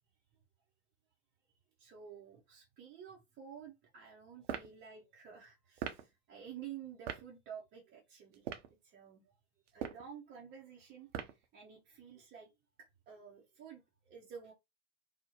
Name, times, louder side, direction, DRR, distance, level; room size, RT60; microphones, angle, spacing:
voice 1, 1.8-8.5 8.8-9.3 9.7-12.5 12.8-14.5, right 8 dB, 30° right, 0.6 m, -51 dB
sound 1, 4.4-4.7 5.8-6.0 7.1-7.2 8.3-8.7 9.7-10.1 11.1-11.4, right 9 dB, 70° right, 0.6 m, -40 dB
2.6 x 2.1 x 2.8 m
figure-of-eight pair, 85°, 38 cm